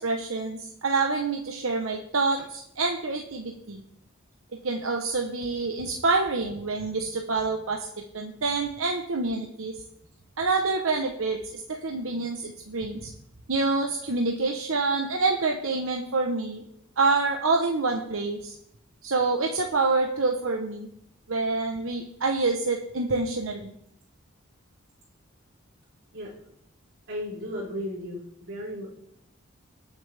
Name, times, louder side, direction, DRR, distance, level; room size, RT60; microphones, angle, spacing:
voice 1, 0.0-3.8 4.6-9.7 10.4-13.1 13.5-16.6 17.0-18.6 19.0-20.9 21.3-23.7, right 3 dB, 85° right, 2 dB, 1.1 m, -27 dB
voice 2, 27.1-28.9, equal, 60° right, -10 dB, 3.9 m, -35 dB
19.5 x 7.1 x 3.5 m, 0.74 s
head